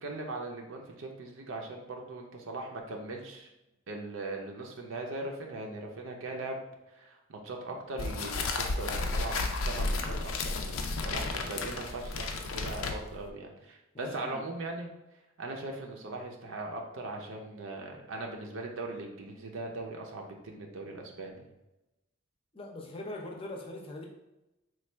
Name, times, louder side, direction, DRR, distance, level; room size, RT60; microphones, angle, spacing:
voice 1, 0.0-3.5 3.9-6.6 6.9-14.9 15.4-21.4, right 2 dB, 70° right, 1 dB, 0.6 m, -40 dB
sound 1, 8.0-13.3, left 3 dB, 80° left, 0.4 m, -33 dB
voice 2, 13.9-14.5 22.5-24.1, left 1 dB, 25° left, 0 dB, 0.6 m, -42 dB
3.1 x 2.4 x 4.3 m, 0.95 s
head